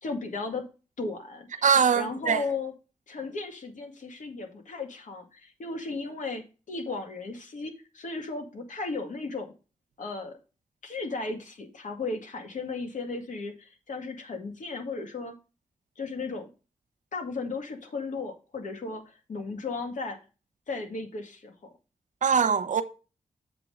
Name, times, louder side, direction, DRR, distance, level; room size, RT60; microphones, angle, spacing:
voice 1, 0.0-0.6 1.0-1.6 1.9-2.7 3.1-9.5 10.0-10.4 10.8-15.4 16.0-16.5 17.1-20.2 20.7-21.7, left 3 dB, 70° left, 2.0 m, -35 dB
voice 2, 1.6-2.4 22.2-22.8, right 6 dB, 70° right, 0.9 m, -22 dB
7.6 x 3.7 x 6.4 m
cardioid pair, 55°, 13 cm